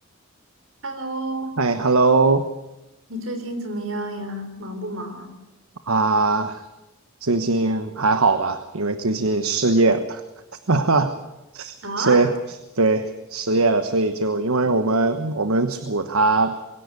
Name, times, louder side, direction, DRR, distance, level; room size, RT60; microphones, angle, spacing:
voice 1, 0.8-1.5 3.1-5.4 11.8-12.3 14.6-14.7, right 2 dB, 65° right, 7 dB, 3.9 m, -30 dB
voice 2, 1.6-2.4 5.9-6.7 7.2-10.2 10.7-11.1 11.5-12.3 12.7-16.5, right 3 dB, 80° right, 10 dB, 1.2 m, -20 dB
22.0 x 17.0 x 9.5 m, 0.99 s
head